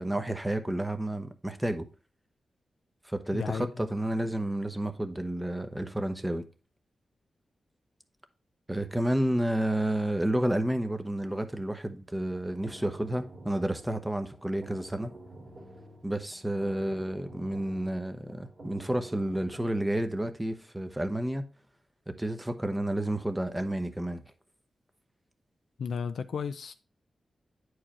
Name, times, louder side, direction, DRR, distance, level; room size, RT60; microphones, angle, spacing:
voice 1, 0.0-1.9 3.0-6.5 8.7-15.1 16.0-21.5 22.2-24.2, right 1 dB, 10° right, 0.9 m, -30 dB
voice 2, 3.3-3.9 25.8-26.7, left 6 dB, 80° left, 0.4 m, -34 dB
sound 1, 12.3-20.0, right 1 dB, 50° right, 2.1 m, -49 dB
9.9 x 4.7 x 3.0 m
wide cardioid pair, 115°, 0 cm